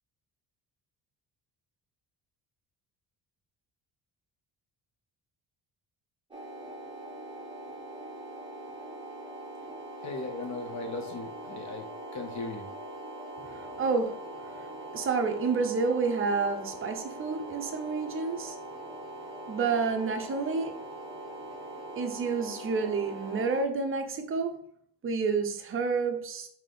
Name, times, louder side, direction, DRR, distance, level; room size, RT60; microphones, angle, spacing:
sound 1, 6.3-23.6, right 1 dB, 10° right, 1.0 m, -42 dB
voice 1, 10.0-11.9 12.1-12.7, left 3 dB, 40° left, 4 dB, 0.6 m, -37 dB
voice 2, 13.8-14.1 14.9-18.6 19.5-20.8 22.0-24.5 25.0-26.5, right 4 dB, 30° right, 5 dB, 0.6 m, -29 dB
3.4 x 2.8 x 3.8 m, 0.65 s
cardioid pair, 115°, 43 cm